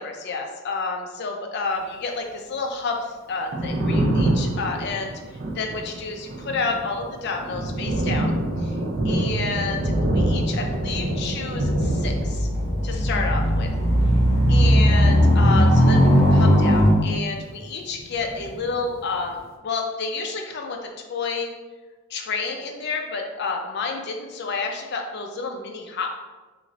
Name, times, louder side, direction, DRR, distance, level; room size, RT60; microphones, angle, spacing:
voice 1, 0.0-5.1 5.6-8.4 8.6-8.7 9.0-12.5 12.8-13.7 14.5-19.4 19.6-21.5 22.1-26.1, left 4 dB, 50° left, 3 dB, 0.4 m, -30 dB
Thunder, 3.3-17.7 18.0-19.2, right 1 dB, 40° right, 0.4 m, -27 dB
sound 1, 11.6-16.9, equal, 75° right, 0.8 m, -18 dB
2.5 x 2.5 x 3.0 m, 1.2 s
head